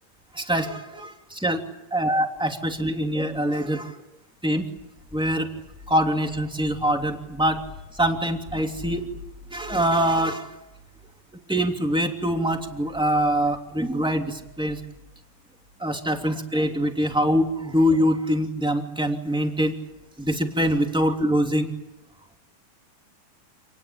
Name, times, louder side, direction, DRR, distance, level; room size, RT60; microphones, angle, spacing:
voice 1, 0.4-1.6 1.9-3.9 4.4-4.6 5.1-5.5 5.9-7.6 8.0-9.0 9.5-10.5 11.5-14.8 15.8-19.7 20.2-21.7, equal, ahead, 3 dB, 2.5 m, -24 dB
28.5 x 20.0 x 9.0 m, 0.96 s
omnidirectional pair, 4.1 m